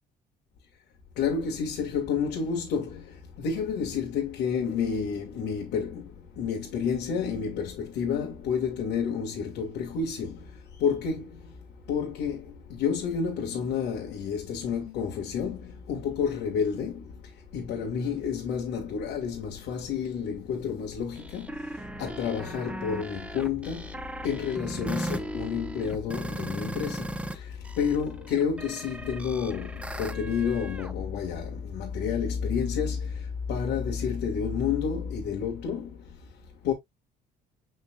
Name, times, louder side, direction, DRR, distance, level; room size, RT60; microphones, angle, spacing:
voice 1, 1.2-36.7, left 6 dB, 85° left, 2.1 m, -30 dB
sound 1, 21.2-27.4 27.7-30.9, right 1 dB, 5° right, 0.8 m, -37 dB
6.9 x 5.7 x 2.4 m
cardioid pair, 110°, 17 cm